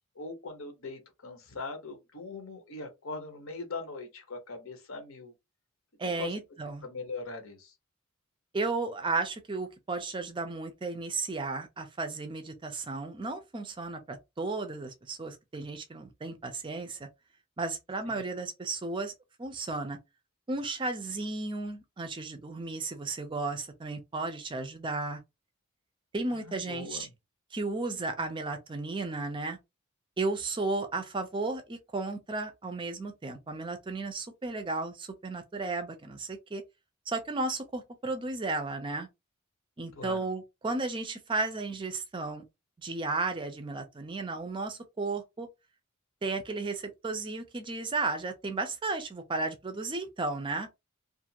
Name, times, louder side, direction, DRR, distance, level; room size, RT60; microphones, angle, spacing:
voice 1, 0.1-5.3 6.0-6.3 6.8-7.7 18.1-18.3 26.3-27.1 40.0-40.2, left 3 dB, 70° left, 0.9 m, -41 dB
voice 2, 6.0-6.8 8.5-17.1 17.6-19.1 19.4-20.0 20.5-25.2 26.1-27.1 27.5-29.6 30.2-36.6 37.1-39.1 39.8-42.4 42.8-45.5 46.2-50.7, right 3 dB, 20° right, 0.4 m, -34 dB
2.4 x 2.4 x 2.8 m
head